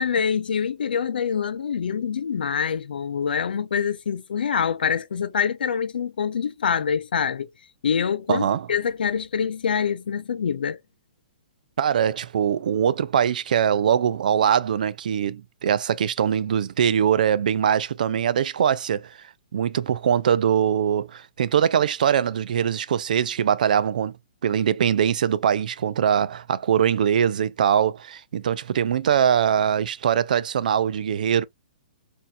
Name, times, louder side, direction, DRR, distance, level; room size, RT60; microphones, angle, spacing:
voice 1, 0.0-7.5 7.8-8.4 8.7-10.8, left 7 dB, 90° left, 0.6 m, -25 dB
voice 2, 8.3-8.7 11.8-19.1 19.5-24.1 24.4-31.4, right 8 dB, 60° right, 0.4 m, -22 dB
4.2 x 2.7 x 2.3 m
hypercardioid pair, 170°, 5 cm